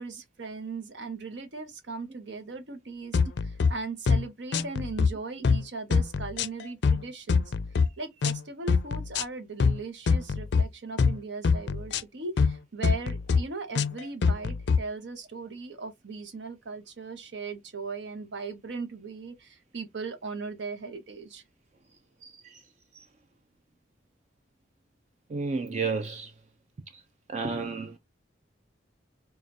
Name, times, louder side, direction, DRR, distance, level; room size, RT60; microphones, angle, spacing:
voice 1, 0.0-7.4 7.8-21.4, right 3 dB, 75° right, 0.9 m, -38 dB
sound 1, 3.1-3.7 4.1-4.2 4.5-5.1 5.4-5.6 5.9-7.0 7.3-7.9 8.2-8.4 8.7-9.2 9.6-9.8 10.1-10.6 11.0-11.2 11.4-12.0 12.4-12.5 12.8-13.4 13.8-14.8, left 5 dB, 70° left, 0.4 m, -24 dB
voice 2, 22.2-22.6 22.9-23.1 25.3-26.3 26.9-27.0 27.3-28.0, right 4 dB, 40° right, 0.4 m, -32 dB
4.8 x 2.4 x 2.5 m
head